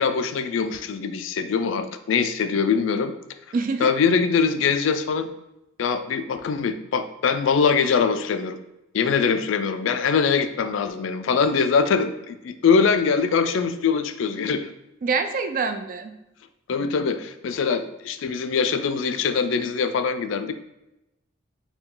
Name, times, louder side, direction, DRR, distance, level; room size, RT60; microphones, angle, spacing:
voice 1, 0.0-3.1 3.8-5.3 5.8-8.6 8.9-14.7 16.7-20.5, left 5 dB, 70° left, 10 dB, 0.4 m, -23 dB
voice 2, 3.5-4.0 15.0-16.1, right 4 dB, 45° right, 9 dB, 0.3 m, -26 dB
4.4 x 2.3 x 3.8 m, 0.92 s
head